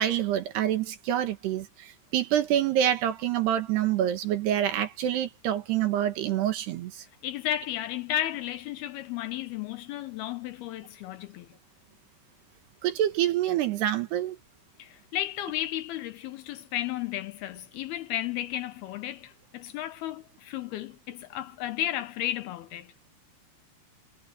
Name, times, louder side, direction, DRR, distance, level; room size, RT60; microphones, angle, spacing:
voice 1, 0.0-7.1 12.8-14.4, right 11 dB, 75° right, 3.5 m, -27 dB
voice 2, 7.2-11.5 14.8-22.9, left 12 dB, 75° left, 2.5 m, -33 dB
omnidirectional pair, 5.0 m